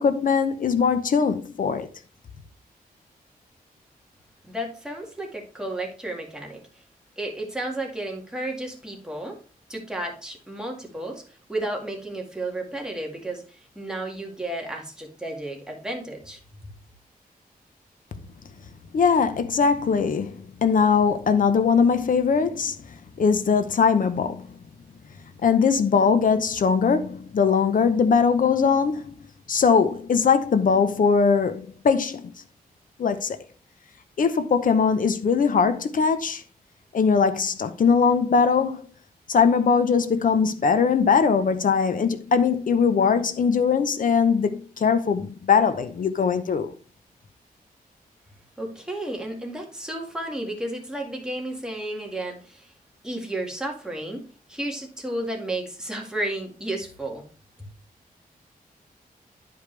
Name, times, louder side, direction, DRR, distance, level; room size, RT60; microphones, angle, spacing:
voice 1, 0.0-1.9 18.9-22.8 23.2-24.5 25.4-29.1 29.5-32.3 33.0-33.4 34.2-36.4 36.9-38.9 39.3-46.7, left 5 dB, 60° left, 0.7 m, -21 dB
voice 2, 4.4-6.6 7.2-9.4 9.7-11.2 11.5-16.4 48.6-52.7 53.0-57.2, right 1 dB, 5° right, 2.0 m, -32 dB
11.0 x 5.1 x 3.3 m
wide cardioid pair, 120°, 16 cm